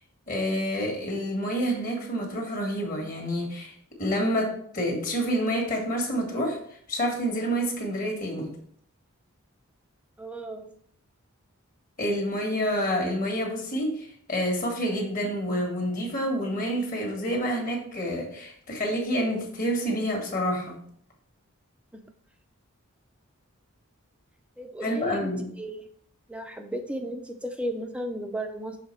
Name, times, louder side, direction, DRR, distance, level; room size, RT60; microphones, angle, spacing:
voice 1, 0.3-6.6 6.9-8.5 12.0-20.8 24.8-25.5, equal, 40° left, 0 dB, 1.6 m, -28 dB
voice 2, 10.2-10.7 21.9-22.0 24.6-25.3 25.6-25.9 26.3-28.8, right 1 dB, 5° right, 5 dB, 0.5 m, -34 dB
6.7 x 3.6 x 4.4 m, 0.62 s
head